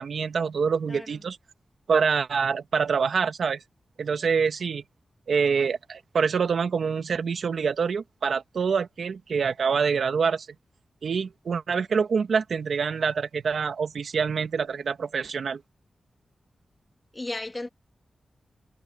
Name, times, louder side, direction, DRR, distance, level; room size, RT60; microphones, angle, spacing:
voice 1, 0.0-1.4 1.9-3.6 4.0-4.8 5.3-10.5 11.0-15.6, right 6 dB, 80° right, 1.7 m, -26 dB
voice 2, 17.1-17.7, left 2 dB, 25° left, 2.4 m, -34 dB
cardioid pair, 70°, 0 cm